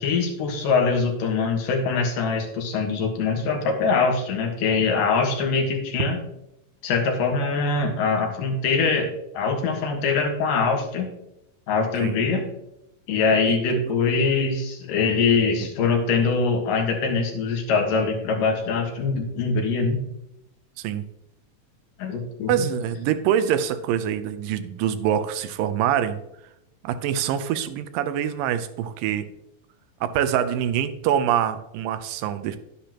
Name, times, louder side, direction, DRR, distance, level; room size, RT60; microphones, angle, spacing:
voice 1, 0.0-6.2 6.8-11.1 11.7-12.5 13.1-20.0 22.0-22.6, left 4 dB, 75° left, 3 dB, 3.1 m, -23 dB
voice 2, 13.5-14.0 20.8-21.0 22.5-26.2 26.8-29.3 30.0-32.6, right 9 dB, 85° right, 11 dB, 2.4 m, -25 dB
11.0 x 10.0 x 3.0 m, 0.83 s
omnidirectional pair, 3.9 m